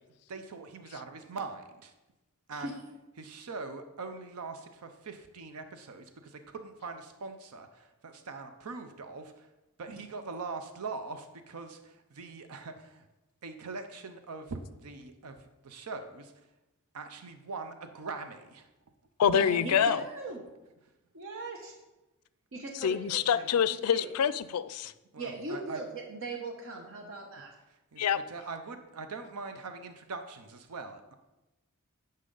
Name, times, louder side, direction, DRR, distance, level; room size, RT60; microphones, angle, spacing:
voice 1, 0.3-1.9 2.5-2.7 3.2-9.5 9.8-13.0 13.4-15.4 15.6-16.3 16.9-18.7 25.1-25.8 27.9-28.0 28.3-31.1, right 4 dB, 90° right, 8 dB, 0.6 m, -42 dB
voice 2, 2.5-2.8 9.9-10.0 19.2-20.4 21.1-21.8 22.5-23.6 23.9-24.1 25.2-27.6, right 3 dB, 65° right, 2 dB, 0.9 m, -39 dB
voice 3, 19.2-20.0 22.8-24.9 28.0-28.2, left 8 dB, 80° left, 16 dB, 0.4 m, -26 dB
9.8 x 5.5 x 3.9 m, 1.0 s
head